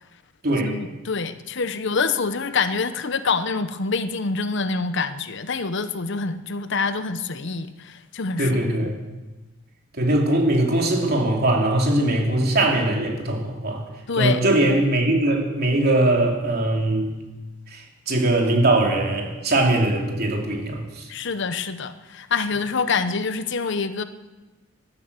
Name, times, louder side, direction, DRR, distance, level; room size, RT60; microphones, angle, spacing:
voice 1, 0.6-8.6 14.1-14.4 21.1-24.0, left 4 dB, 60° left, 12 dB, 0.8 m, -26 dB
voice 2, 8.4-9.0 9.9-13.8 14.2-17.1 17.7-21.1, right 1 dB, 50° right, 1 dB, 3.1 m, -21 dB
13.0 x 13.0 x 8.1 m, 1.1 s
head